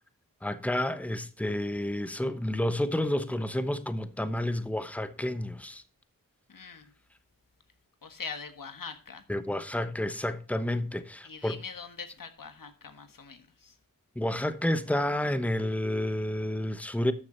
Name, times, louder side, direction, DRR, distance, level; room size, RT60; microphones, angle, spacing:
voice 1, 0.4-5.8 9.3-11.6 14.2-17.1, left 1 dB, 5° left, 1.0 m, -30 dB
voice 2, 6.5-6.9 8.0-9.2 11.2-13.8, left 5 dB, 70° left, 1.5 m, -42 dB
13.0 x 6.4 x 4.3 m
cardioid pair, 50°, 34 cm